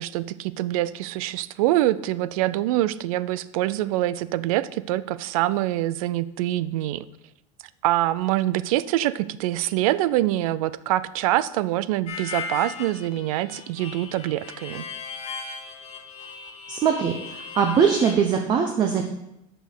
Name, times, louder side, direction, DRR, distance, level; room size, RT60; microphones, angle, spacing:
voice 1, 0.0-7.1 7.8-14.9, right 15 dB, 80° right, 17 dB, 0.4 m, -25 dB
Harmonica, 12.1-18.1, left 5 dB, 35° left, 1.1 m, -37 dB
voice 2, 16.7-17.1 17.5-19.0, right 7 dB, 25° right, 4 dB, 0.6 m, -21 dB
6.1 x 5.2 x 6.5 m, 0.86 s
supercardioid pair, 160°, 18 cm